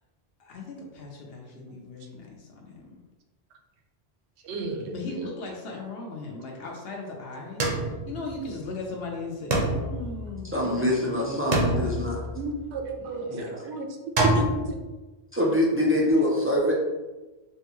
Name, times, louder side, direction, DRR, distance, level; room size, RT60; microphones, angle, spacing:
voice 1, 0.4-3.0 4.9-7.7 8.1-12.0 13.0-13.5, left 3 dB, 65° left, 0 dB, 0.9 m, -38 dB
voice 2, 4.4-5.3 12.3-14.8, right 3 dB, 85° right, 3 dB, 0.8 m, -33 dB
sound 1, 7.6-8.8 9.5-10.9 11.5-12.9 14.2-14.7, right 2 dB, 55° right, 0.7 m, -26 dB
voice 3, 10.5-12.2 13.3-13.5 15.3-16.7, left 1 dB, 20° right, -4 dB, 0.3 m, -24 dB
3.7 x 2.2 x 2.9 m, 1.1 s
omnidirectional pair, 1.1 m